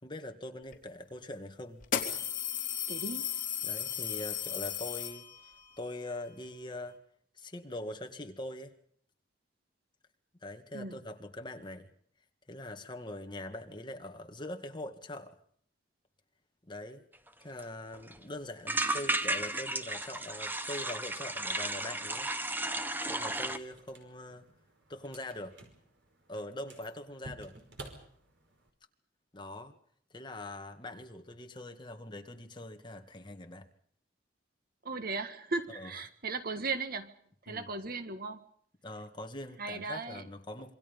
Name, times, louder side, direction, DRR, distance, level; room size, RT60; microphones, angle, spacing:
voice 1, 0.0-1.8 3.6-7.0 7.3-8.7 10.4-11.9 12.5-15.4 16.6-17.0 17.4-22.3 23.0-24.5 24.9-25.6 26.3-27.6 29.3-29.8 30.1-33.7 35.7-35.9 37.5-37.7 38.8-40.7, left 1 dB, 25° left, 5 dB, 2.1 m, -43 dB
sound 1, 0.7-0.8 1.8-5.6, left 9 dB, 45° left, 3.2 m, -35 dB
voice 2, 2.9-3.4 10.7-11.0 34.8-37.2 37.4-38.4 39.6-40.2, right 3 dB, 55° right, 10 dB, 1.7 m, -37 dB
sound 2, 17.3-17.4 17.6-17.7 17.9-18.2 18.7-23.6, right 1 dB, 10° right, 1.3 m, -34 dB
sound 3, 23.2-28.7, right 2 dB, 80° right, 5.2 m, -52 dB
27.0 x 24.0 x 5.4 m, 0.62 s
head